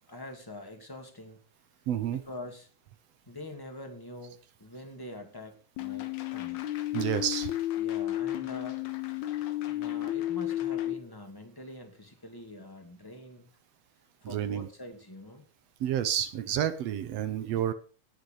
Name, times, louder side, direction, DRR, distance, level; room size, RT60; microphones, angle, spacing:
voice 1, 0.1-1.4 2.1-2.7 3.3-6.6 7.8-8.8 9.7-13.5 14.2-15.4, left 1 dB, 10° left, 4 dB, 1.9 m, -45 dB
voice 2, 1.9-2.2 6.9-7.5 14.3-14.7 15.8-17.7, right 10 dB, 70° right, 11 dB, 1.9 m, -29 dB
sound 1, 5.8-10.9, left 14 dB, 85° left, 2.5 m, -32 dB
18.0 x 6.6 x 4.9 m, 0.37 s
omnidirectional pair, 3.3 m